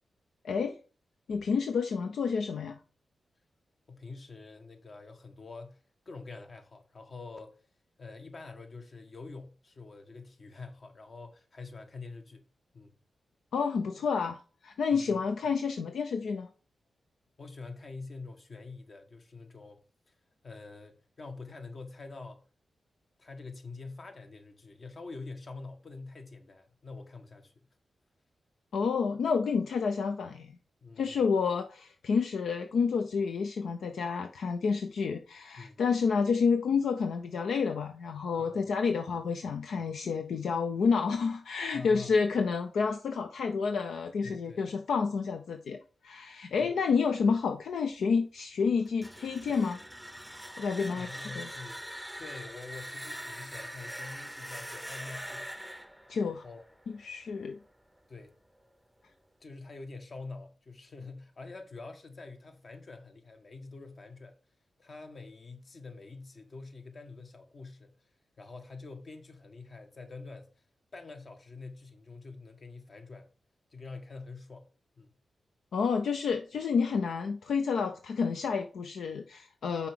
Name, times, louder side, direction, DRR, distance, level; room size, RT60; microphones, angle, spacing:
voice 1, 0.4-0.8 1.3-2.8 13.5-16.5 28.7-30.5 31.0-49.8 50.6-51.1 51.3-51.5 56.1-56.4 57.0-57.6 75.7-79.9, left 5 dB, 85° left, 0.5 m, -29 dB
voice 2, 3.9-7.6 8.0-12.4 12.7-13.0 14.9-15.2 17.4-20.2 20.4-22.4 23.2-27.6 30.8-31.2 35.6-35.8 38.4-38.7 41.7-42.1 44.2-44.6 46.6-46.8 50.9-51.8 52.2-55.5 56.1-56.6 58.1-58.3 59.4-64.3 64.8-68.1 68.4-70.5 70.9-73.3 73.7-74.7 75.0-75.1, left 3 dB, 55° left, 1.4 m, -46 dB
sound 1, 48.9-57.7, equal, 5° right, 0.6 m, -43 dB
5.7 x 4.9 x 5.0 m
cardioid pair, 50°, 0 cm